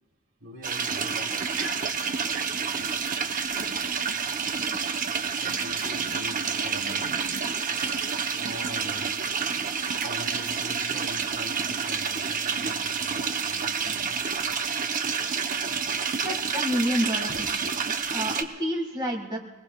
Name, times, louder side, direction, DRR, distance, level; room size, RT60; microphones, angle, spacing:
voice 1, 0.4-1.9 2.3-2.9 3.6-3.8 4.9-7.4 7.7-8.0 8.4-9.1 10.0-14.1 17.3-17.4, equal, 70° right, 1 dB, 2.7 m, -42 dB
sound 1, 0.6-18.4, right 6 dB, 40° right, 0.8 m, -29 dB
voice 2, 16.2-17.7 18.1-19.4, equal, 25° right, 0 dB, 1.9 m, -29 dB
28.0 x 20.0 x 2.3 m, 1.2 s
head